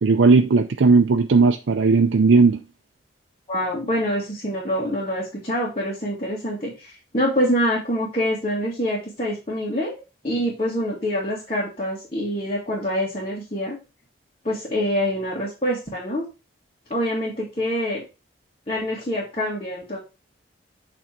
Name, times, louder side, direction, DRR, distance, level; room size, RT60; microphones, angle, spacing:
voice 1, 0.0-2.6, right 4 dB, 90° right, 0.5 m, -16 dB
voice 2, 3.5-13.8 14.4-16.2 16.9-18.0 18.7-20.0, equal, 30° left, 2.1 m, -25 dB
8.4 x 3.5 x 4.5 m
head